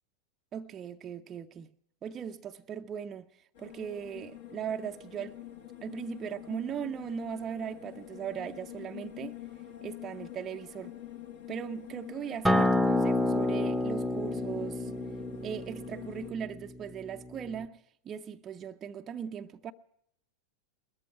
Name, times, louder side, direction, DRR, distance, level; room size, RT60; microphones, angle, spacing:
voice 1, 0.5-1.7 2.0-3.3 3.6-5.4 5.8-9.4 9.8-10.9 11.5-14.9 15.4-19.7, right 8 dB, 25° right, 0.5 m, -39 dB
sound 1, 3.5-16.3, left 12 dB, 55° left, 1.4 m, -46 dB
Acoustic guitar, 12.4-17.6, left 1 dB, ahead, 0.8 m, -29 dB
21.0 x 13.5 x 4.5 m
figure-of-eight pair, 90°, 0 cm